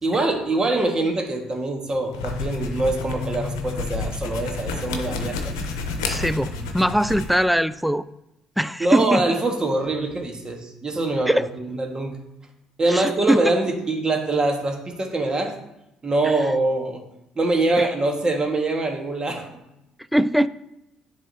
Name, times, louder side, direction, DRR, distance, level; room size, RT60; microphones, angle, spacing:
voice 1, 0.0-5.5 8.8-12.2 12.8-15.5 16.0-17.0 17.3-19.5, right 2 dB, 30° right, 2 dB, 1.6 m, -24 dB
sound 1, 2.1-7.4, left 3 dB, 85° left, 0.7 m, -30 dB
voice 2, 6.0-8.0 8.6-9.4 11.3-11.5 12.9-13.4 17.8-17.9 20.1-20.5, equal, ahead, 15 dB, 0.3 m, -21 dB
10.0 x 3.5 x 2.8 m, 0.88 s
hypercardioid pair, 55°, 3 cm